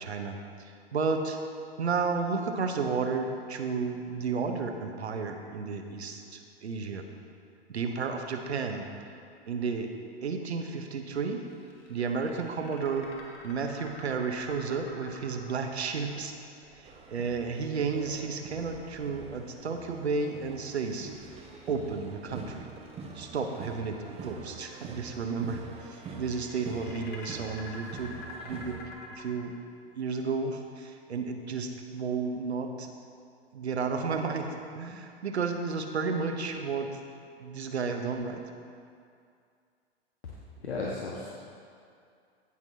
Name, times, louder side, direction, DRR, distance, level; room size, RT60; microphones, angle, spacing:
voice 1, 0.0-1.4 1.8-7.1 7.7-8.9 9.5-9.9 10.2-11.4 11.9-13.1 13.4-16.3 16.7-21.1 21.7-22.7 23.1-28.8 29.2-29.6 29.9-32.9 33.5-37.0 37.4-38.4, right 5 dB, 80° right, 4 dB, 1.0 m, -32 dB
sound 1, 11.5-17.7 20.5-22.1 22.6-24.0 25.2-29.2, left 3 dB, 30° left, 1.5 m, -49 dB
sound 2, 16.8-28.9, right 4 dB, 20° right, 0.9 m, -46 dB
voice 2, 40.6-41.3, left 3 dB, 75° left, -5 dB, 1.4 m, -34 dB
17.0 x 6.1 x 2.8 m, 2.4 s
figure-of-eight pair, 105°, 32 cm